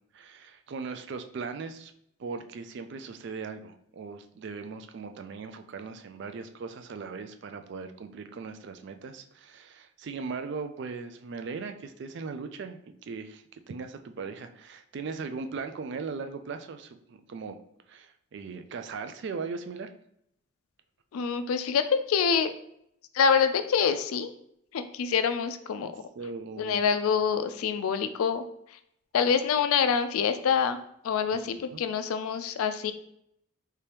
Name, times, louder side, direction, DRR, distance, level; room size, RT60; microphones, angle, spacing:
voice 1, 0.1-1.9 2.2-17.6 17.9-19.9 25.8-26.8 31.7-31.8, right 4 dB, 55° right, 8 dB, 0.3 m, -39 dB
voice 2, 21.1-22.5 23.1-24.3 24.7-26.0 26.6-28.4 29.1-32.9, left 6 dB, 85° left, 10 dB, 0.4 m, -26 dB
3.3 x 2.8 x 3.3 m, 0.75 s
head